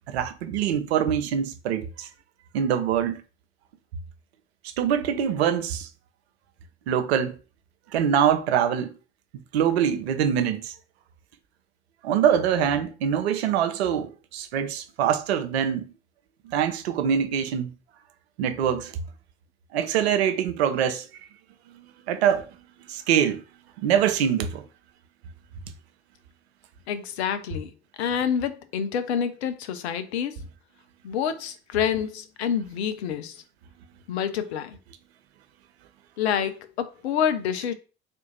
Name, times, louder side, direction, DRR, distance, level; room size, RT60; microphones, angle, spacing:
voice 1, 0.1-2.1 2.5-3.2 4.8-5.9 6.9-7.4 7.9-8.9 9.5-10.7 12.0-15.9 16.5-17.7 18.4-18.9 19.7-21.1 22.1-22.4 22.9-23.4 23.8-24.6, right 8 dB, 75° right, 0.6 m, -24 dB
voice 2, 26.9-27.7 28.0-30.4 31.0-33.4 34.1-34.8 36.2-37.7, left 8 dB, 75° left, 0.6 m, -27 dB
3.7 x 2.6 x 3.9 m
figure-of-eight pair, 60°, 33 cm